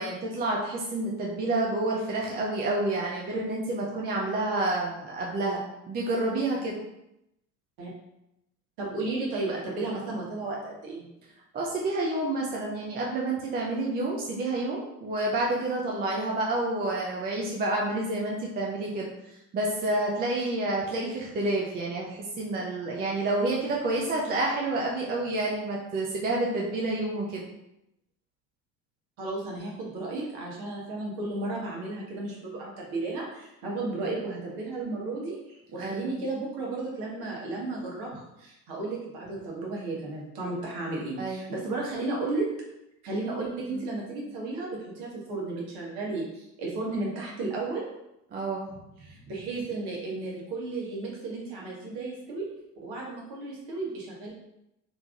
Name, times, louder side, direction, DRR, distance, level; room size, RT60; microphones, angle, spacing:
voice 1, 0.0-6.8 11.5-27.4 35.8-36.2 41.2-41.5 43.7-43.8 46.9-47.1 48.3-48.7, right 2 dB, 20° right, -3 dB, 0.5 m, -29 dB
voice 2, 8.8-11.0 29.2-42.5 43.0-47.9 49.0-52.5 52.8-54.3, right 2 dB, 50° right, -3 dB, 1.4 m, -34 dB
3.4 x 3.1 x 2.5 m, 0.85 s
figure-of-eight pair, 75°, 49 cm